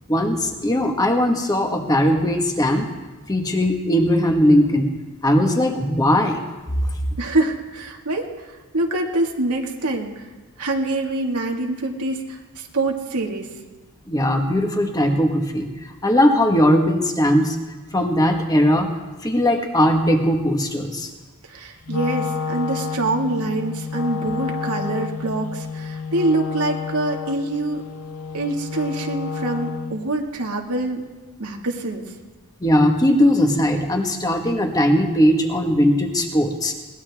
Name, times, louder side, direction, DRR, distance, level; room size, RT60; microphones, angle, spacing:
voice 1, 0.1-2.9 3.3-4.9 5.2-6.4 14.1-15.7 16.0-17.6 17.9-18.9 19.2-21.1 32.6-36.7, equal, 15° left, 3 dB, 1.5 m, -19 dB
voice 2, 7.2-10.3 10.6-13.5 21.5-27.8 28.3-31.0 31.4-32.0, right 2 dB, 85° right, 1 dB, 2.1 m, -25 dB
Wind instrument woodwind instrument, 21.8-30.1, left 5 dB, 75° left, 0.8 m, -30 dB
21.5 x 18.5 x 3.6 m, 1.2 s
head